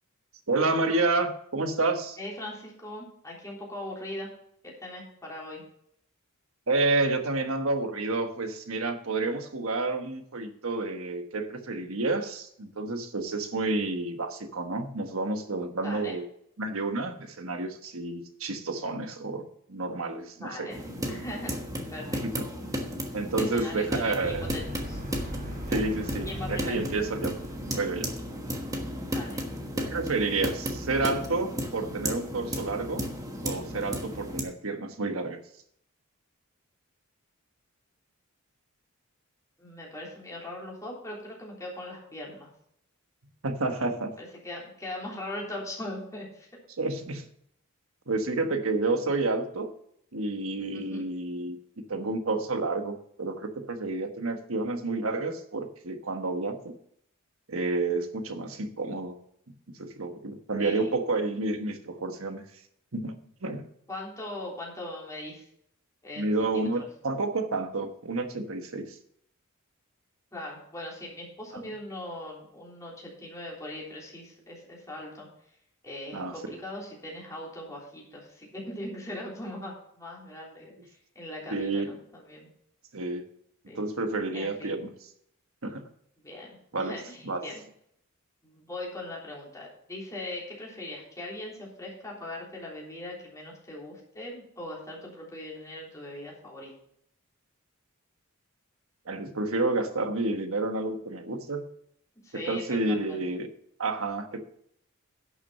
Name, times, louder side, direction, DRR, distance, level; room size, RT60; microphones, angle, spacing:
voice 1, 0.5-2.2 6.7-16.2 16.6-20.7 22.2-22.4 23.1-24.5 25.7-27.3 27.6-28.1 29.7-33.0 33.4-35.4 43.4-44.1 46.8-47.3 48.1-49.7 50.1-51.6 51.9-56.7 57.5-59.1 59.8-62.4 62.9-63.7 66.2-69.0 76.1-76.6 81.5-81.9 82.9-83.2 83.7-84.9 85.6-85.9 86.7-87.4 99.1-101.7 102.3-103.5 103.8-104.4, right 3 dB, 75° right, 7 dB, 1.3 m, -30 dB
voice 2, 2.2-4.3 4.6-5.6 15.8-16.2 20.4-21.6 21.9-22.2 23.4-24.6 24.9-25.0 25.7-25.9 26.3-26.8 28.5-28.6 29.1-29.4 39.6-42.5 44.2-46.5 48.1-48.2 48.9-49.1 50.7-51.1 60.6-61.0 63.9-65.5 66.0-66.7 70.3-75.3 75.8-82.5 83.7-83.8 84.3-84.8 86.2-87.6 88.4-96.7 102.2-103.2, left 1 dB, 15° left, -4 dB, 3.5 m, -40 dB
sound 1, 20.7-34.4, equal, 15° right, 1.3 m, -34 dB
sound 2, 24.2-28.8, equal, 40° right, 3.3 m, -39 dB
11.0 x 6.3 x 5.6 m, 0.71 s
head